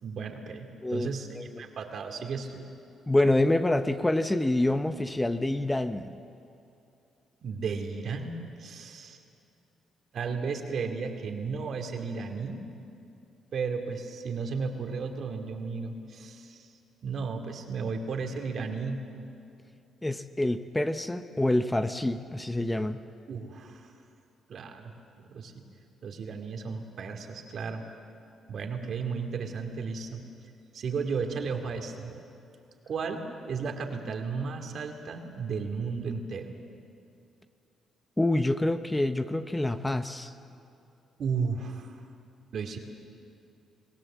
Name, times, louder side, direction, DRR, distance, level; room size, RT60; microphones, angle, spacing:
voice 1, 0.0-2.6 7.4-9.2 10.1-12.6 13.5-16.7 17.0-19.0 23.3-23.9 24.5-24.9 25.3-25.6 26.0-27.8 28.5-30.2 30.7-32.1 32.9-36.5 41.2-42.0 42.5-42.8, right 5 dB, 60° right, 4 dB, 2.4 m, -34 dB
voice 2, 3.1-6.1 20.0-23.0 38.2-40.3, left 1 dB, 10° left, 9 dB, 0.8 m, -27 dB
24.5 x 18.0 x 7.5 m, 2.6 s
cardioid pair, 90°, 0 cm